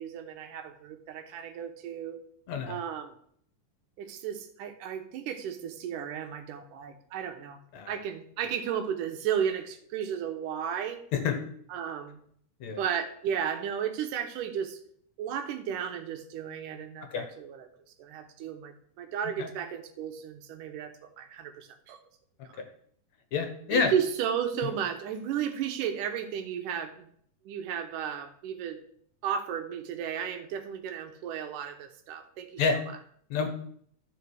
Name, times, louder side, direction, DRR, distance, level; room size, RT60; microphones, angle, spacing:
voice 1, 0.0-2.2 2.7-3.2 4.0-7.6 7.9-11.0 11.7-12.2 12.8-14.8 15.2-17.7 18.0-22.0 22.4-22.6 23.7-27.1 27.5-28.8 29.2-32.8, right 8 dB, 85° right, 7 dB, 2.5 m, -34 dB
voice 2, 23.3-23.9 24.6-24.7 32.6-32.8 33.3-33.5, left 5 dB, 65° left, 5 dB, 2.2 m, -27 dB
13.0 x 5.1 x 4.7 m, 0.64 s
omnidirectional pair, 3.6 m